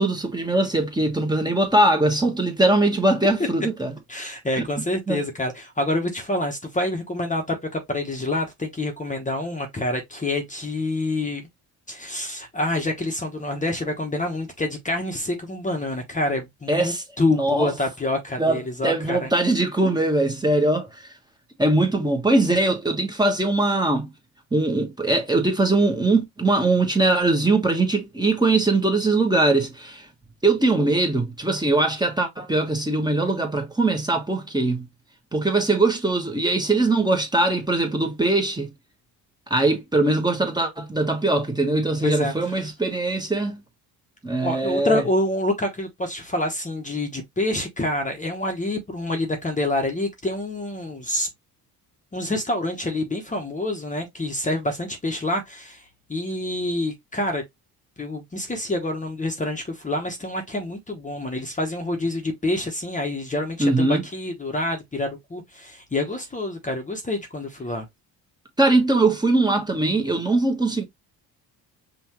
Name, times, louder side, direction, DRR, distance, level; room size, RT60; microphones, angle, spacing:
voice 1, 0.0-4.0 5.1-5.2 16.7-17.0 17.3-17.7 18.4-20.9 21.6-24.1 24.5-30.0 30.4-34.9 35.3-38.7 39.5-43.6 44.2-45.0 63.6-64.0 68.6-70.8, right 2 dB, 10° right, 1.2 m, -21 dB
voice 2, 4.1-11.4 11.9-19.3 42.0-42.3 44.4-51.3 52.1-55.8 56.1-57.4 58.0-67.9, left 1 dB, 20° left, 1.0 m, -27 dB
5.5 x 2.6 x 3.0 m
cardioid pair, 95°, 40 cm